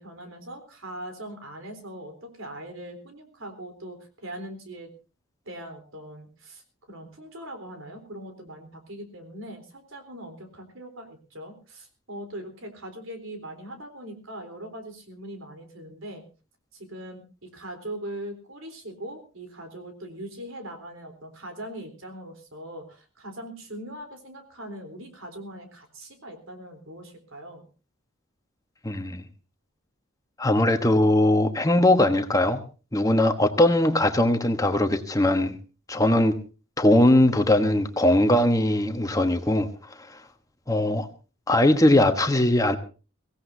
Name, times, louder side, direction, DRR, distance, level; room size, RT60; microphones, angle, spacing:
voice 1, 0.0-4.9 5.4-16.2 16.7-27.7, right 1 dB, 80° right, 6 dB, 3.8 m, -41 dB
voice 2, 28.8-29.2 30.4-32.6 32.9-35.5 35.9-36.4 36.8-39.7 40.0-40.2 40.7-41.1 41.5-42.8, left 1 dB, 15° left, 6 dB, 1.1 m, -20 dB
23.5 x 16.5 x 2.7 m, 0.34 s
head